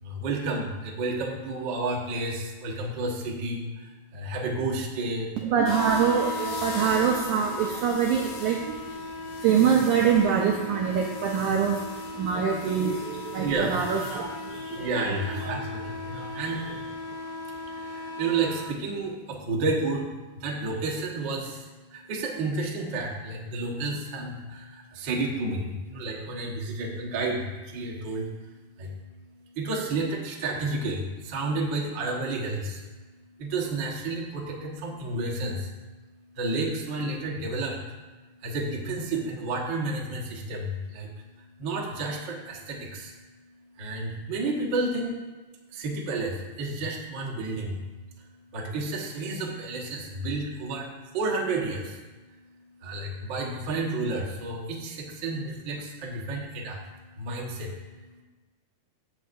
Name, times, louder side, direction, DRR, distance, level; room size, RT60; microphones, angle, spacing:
voice 1, 0.0-5.4 13.4-13.8 14.7-16.6 17.7-20.1 20.3-28.9 29.5-32.8 33.4-35.7 36.3-37.8 38.4-41.1 41.6-43.1 43.7-45.1 45.7-47.8 48.5-52.0 52.8-56.8 57.2-58.2, right 2 dB, 65° right, -2 dB, 1.1 m, -31 dB
voice 2, 5.4-9.1 9.4-11.8 12.2-14.9 15.3-15.6 16.4-16.8, right 7 dB, 85° right, 0 dB, 1.7 m, -25 dB
sound 1, 5.6-18.7, left 2 dB, 80° left, 3.4 m, -36 dB
14.0 x 7.4 x 2.6 m, 1.2 s
omnidirectional pair, 4.3 m